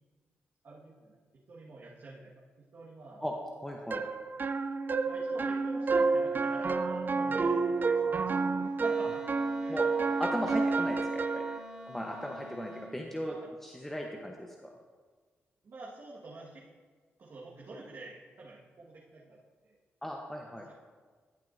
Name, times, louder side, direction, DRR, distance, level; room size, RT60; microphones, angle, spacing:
voice 1, 0.6-1.2 1.5-2.3 2.6-3.2 5.0-9.8 10.3-10.5 13.2-13.5 15.6-16.7 17.2-19.4 19.6-19.8, right 2 dB, 60° right, -6 dB, 1.7 m, -48 dB
voice 2, 3.6-4.0 9.0-9.1 9.7-9.9 10.2-11.5 11.9-13.4 13.6-14.7 20.0-20.6, equal, 5° left, 0 dB, 1.0 m, -37 dB
sound 1, 3.9-11.6, right 4 dB, 45° right, 0.5 m, -29 dB
Wind instrument woodwind instrument, 8.8-12.9, equal, 10° right, 1.3 m, -47 dB
14.0 x 7.4 x 2.7 m, 1.5 s
supercardioid pair, 50°, 5 cm